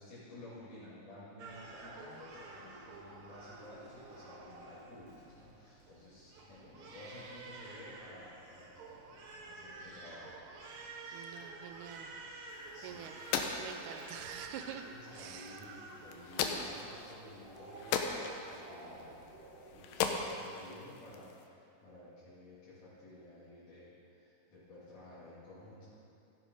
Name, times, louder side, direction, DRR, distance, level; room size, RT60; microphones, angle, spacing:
voice 1, 0.0-10.4 12.7-13.0 15.0-18.2 18.5-19.2 19.7-25.9, left 1 dB, 65° left, -13 dB, 3.9 m, -53 dB
Crying sobbing, 1.4-20.2, right 3 dB, 60° right, 1.4 m, -51 dB
voice 2, 11.1-12.1 12.4-12.6 12.8-13.2 13.6-15.6, right 8 dB, 80° right, 7 dB, 2.0 m, -47 dB
sound 1, 12.5-21.5, left 6 dB, 85° left, 2.4 m, -40 dB
15.5 x 6.3 x 5.4 m, 2.6 s
omnidirectional pair, 3.9 m